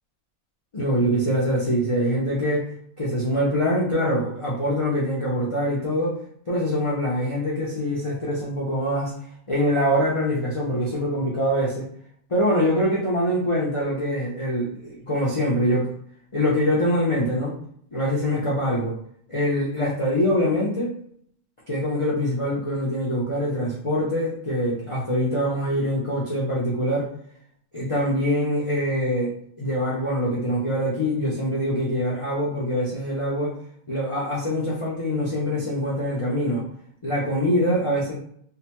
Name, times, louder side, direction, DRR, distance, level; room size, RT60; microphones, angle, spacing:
voice 1, 0.7-2.7 3.0-6.2 6.5-9.1 9.5-11.9 12.3-15.9 16.3-17.6 17.9-19.0 19.3-21.0 21.7-27.1 27.7-33.6 33.9-36.7 37.0-38.1, equal, 55° left, -6 dB, 0.3 m, -24 dB
2.9 x 2.2 x 2.9 m, 0.65 s
omnidirectional pair, 1.5 m